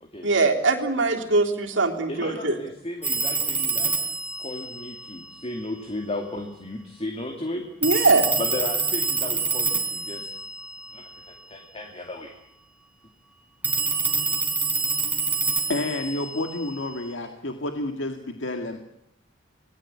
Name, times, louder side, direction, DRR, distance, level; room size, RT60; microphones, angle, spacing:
voice 1, 0.2-2.5 7.8-8.3, right 3 dB, 70° right, 2 dB, 3.4 m, -21 dB
voice 2, 2.1-3.9 4.4-7.6 8.4-10.3 10.9-12.3, left 2 dB, 30° left, 3 dB, 2.6 m, -34 dB
Telephone, 3.0-5.7 7.8-11.5 13.6-17.1, right 4 dB, 10° right, 4.1 m, -27 dB
voice 3, 15.7-18.8, left 2 dB, 70° left, 5 dB, 2.0 m, -30 dB
27.5 x 19.0 x 8.5 m, 0.77 s
head